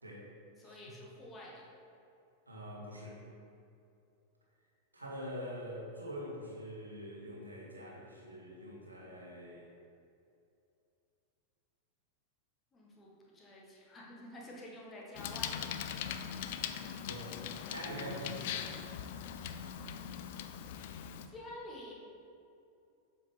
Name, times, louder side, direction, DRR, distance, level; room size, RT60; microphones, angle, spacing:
voice 1, 0.6-1.7 12.7-15.7 21.3-21.9, left 1 dB, 20° left, -3 dB, 1.5 m, -49 dB
voice 2, 2.5-3.2 4.9-9.7 16.1-16.8 17.0-18.6, equal, 80° right, -4 dB, 1.6 m, -45 dB
Bicycle, 15.1-21.3, left 9 dB, 50° left, 0.4 m, -41 dB
7.5 x 5.4 x 3.5 m, 2.7 s
figure-of-eight pair, 90°, 0 cm